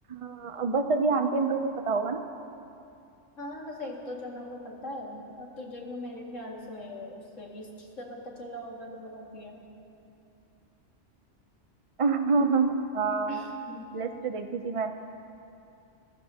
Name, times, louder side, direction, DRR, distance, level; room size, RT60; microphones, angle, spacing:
voice 1, 0.1-2.2 12.0-13.4 13.9-14.9, right 4 dB, 40° right, 6 dB, 0.5 m, -27 dB
voice 2, 3.4-9.6 13.3-13.9, left 1 dB, 90° left, -2 dB, 2.5 m, -40 dB
29.5 x 15.0 x 2.8 m, 2.7 s
omnidirectional pair, 1.3 m